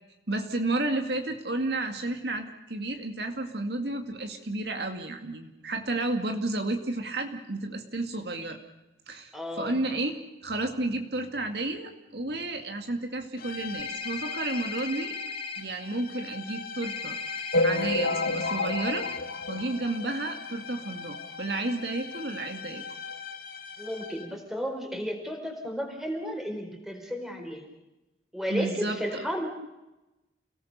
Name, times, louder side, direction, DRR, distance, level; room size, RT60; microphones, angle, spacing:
voice 1, 0.3-8.6 9.1-15.1 15.6-17.2 17.6-19.1 19.5-22.8 28.5-29.0, right 2 dB, 65° right, 5 dB, 2.2 m, -31 dB
voice 2, 9.3-9.8 23.8-27.6 28.3-29.5, equal, ahead, 2 dB, 4.5 m, -33 dB
sound 1, 13.4-24.5, left 6 dB, 55° left, 2.5 m, -42 dB
sound 2, 13.8-15.6 16.8-19.2, left 4 dB, 30° left, 1.2 m, -37 dB
sound 3, 17.5-20.4 20.9-21.0 21.1-21.3 21.6-21.7 22.5-22.6 23.1-23.2, left 2 dB, 75° left, 1.3 m, -29 dB
29.5 x 18.5 x 6.8 m, 1.0 s
head